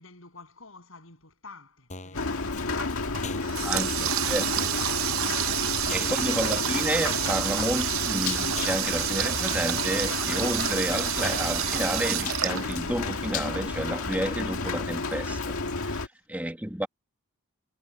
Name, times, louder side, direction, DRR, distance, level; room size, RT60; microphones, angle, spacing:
voice 1, 0.0-4.1 16.1-16.3, left 3 dB, 70° left, 7.7 m, -52 dB
sound 1, 1.9-2.2 2.6-2.7 2.9-3.0 3.2-3.6 3.9-4.0 4.2-4.3 4.6-4.9 5.2-5.3 5.6-5.7 5.9-6.2 6.6-6.7 6.9-7.0 7.2-7.5 7.9-8.0 8.2-8.3 8.6-8.9 9.2-9.3 9.6-9.7 9.9-10.2 10.6-10.7 10.9-11.0 11.2-11.6 11.9-12.0 12.2-12.3, left 3 dB, 35° left, 7.5 m, -41 dB
Rain, 2.1-16.1, left 3 dB, 85° left, 1.8 m, -31 dB
Water tap faucet, 3.1-13.3, right 12 dB, 70° right, 0.7 m, -29 dB
voice 2, 3.6-4.5 5.9-16.9, right 1 dB, 5° right, 1.4 m, -31 dB
head